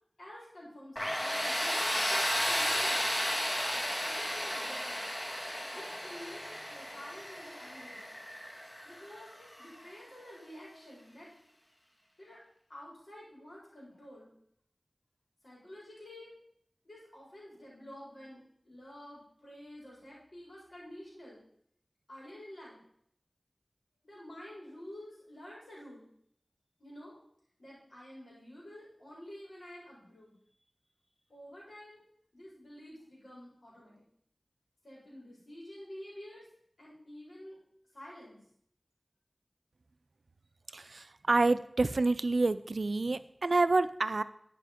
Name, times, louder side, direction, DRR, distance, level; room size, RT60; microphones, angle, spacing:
voice 1, 0.2-3.1 4.1-5.0 5.7-8.1 8.8-11.3 12.2-12.4 12.7-14.3 15.4-16.3 16.8-21.4 22.1-22.8 24.0-26.1 26.8-27.2 27.6-30.3 31.3-32.1 32.3-33.9 34.8-36.5 36.8-37.6 37.9-38.4, left 1 dB, 80° left, -5 dB, 4.0 m, -50 dB
Tools, 1.0-9.7, equal, 25° left, 1.6 m, -33 dB
voice 2, 40.7-44.2, right 3 dB, 85° right, 14 dB, 0.4 m, -28 dB
10.0 x 5.3 x 5.0 m, 0.68 s
wide cardioid pair, 55°, 0 cm